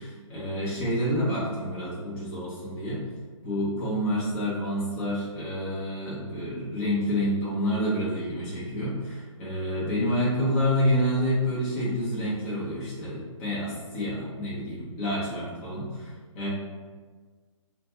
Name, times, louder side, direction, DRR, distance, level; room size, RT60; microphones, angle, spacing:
voice 1, 0.3-3.0 3.4-16.5, equal, 25° left, -8 dB, 0.9 m, -28 dB
2.5 x 2.4 x 2.8 m, 1.4 s
figure-of-eight pair, 140°, 17 cm